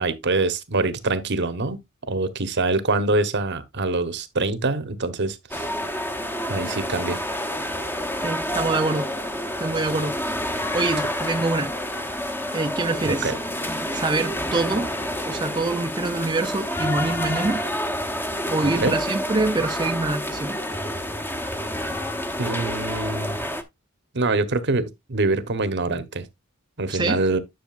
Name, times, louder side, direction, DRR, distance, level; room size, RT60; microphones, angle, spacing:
voice 1, 0.0-5.7 6.5-7.2 13.1-13.4 18.6-19.0 22.4-23.4 24.1-26.3 26.8-27.4, right 3 dB, 55° right, 1.0 m, -25 dB
sound 1, 5.5-23.6, equal, 10° left, 0.9 m, -28 dB
voice 2, 8.2-9.1 9.6-10.1 10.4-11.7 12.5-13.3 13.9-14.9 15.3-17.6 18.5-20.6 26.9-27.2, right 3 dB, 20° right, 0.6 m, -25 dB
10.5 x 6.3 x 2.4 m
head